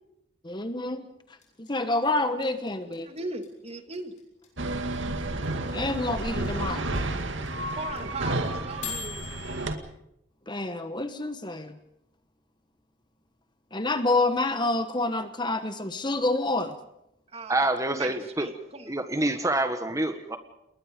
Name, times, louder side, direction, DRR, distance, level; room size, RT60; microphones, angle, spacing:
voice 1, 0.4-1.1 1.6-3.1 5.7-6.8 10.5-11.8 13.7-16.7, left 2 dB, 25° left, 9 dB, 1.2 m, -28 dB
sound 1, 1.4-9.7, left 7 dB, 40° left, 6.8 m, -39 dB
voice 2, 3.0-4.1 7.7-9.7 17.3-18.9, right 3 dB, 35° right, 7 dB, 2.1 m, -38 dB
sound 2, 4.6-9.7, right 2 dB, 85° right, 2.1 m, -31 dB
voice 3, 17.5-18.5 18.9-20.4, right 2 dB, 15° right, 8 dB, 1.6 m, -27 dB
29.0 x 21.0 x 5.2 m, 0.81 s
head